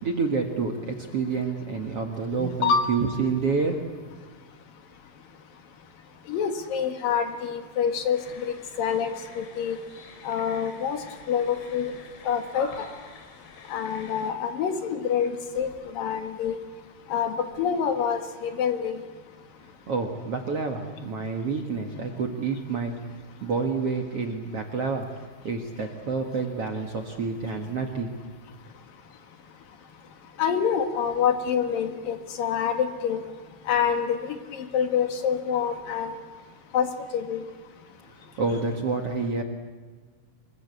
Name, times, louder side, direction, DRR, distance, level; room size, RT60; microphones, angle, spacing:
voice 1, 0.0-3.8 19.9-23.0 23.4-25.1 25.4-28.1 38.4-39.4, right 4 dB, 50° right, 3 dB, 2.0 m, -28 dB
voice 2, 2.4-2.9 6.3-8.2 8.8-9.8 10.2-11.0 11.3-11.9 12.2-12.9 13.7-15.7 15.9-16.5 17.1-19.0 30.4-33.2 33.7-36.1 36.7-36.9 37.1-37.4, left 7 dB, 65° left, 6 dB, 3.3 m, -26 dB
sound 1, 8.1-14.3, left 5 dB, 80° left, 5.2 m, -47 dB
25.0 x 23.0 x 8.2 m, 1.5 s
omnidirectional pair, 4.6 m